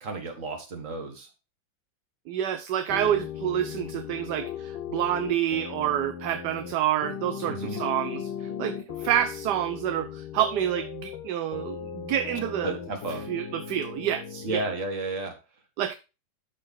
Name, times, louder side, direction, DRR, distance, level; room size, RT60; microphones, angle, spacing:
voice 1, 0.0-1.3 7.5-7.8 12.6-13.3 14.4-15.4, right 2 dB, 45° right, 1.9 m, -32 dB
voice 2, 2.3-12.8 13.3-14.6 15.8-15.9, right 11 dB, 70° right, 1.1 m, -28 dB
sound 1, 2.9-14.7, left 8 dB, 85° left, 1.7 m, -37 dB
12.5 x 4.2 x 3.5 m
omnidirectional pair, 2.1 m